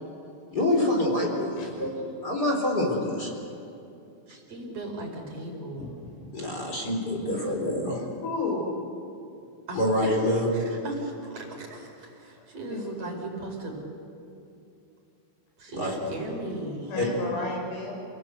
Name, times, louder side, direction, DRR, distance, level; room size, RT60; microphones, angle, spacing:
voice 1, 0.5-1.9 2.2-3.3 6.3-8.1 9.7-10.5 15.7-15.9 17.0-17.1, left 1 dB, 20° left, 1 dB, 3.6 m, -26 dB
voice 2, 1.6-1.9 5.8-5.9 6.2-6.5 7.3-7.4 8.2-8.7 12.4-13.2 16.9-17.9, left 3 dB, 85° left, 0 dB, 8.3 m, -34 dB
voice 3, 4.3-5.9 9.7-9.8 10.4-13.8 15.6-16.9, right 2 dB, 35° right, 0 dB, 5.3 m, -37 dB
28.0 x 18.5 x 8.2 m, 2.7 s
omnidirectional pair, 5.6 m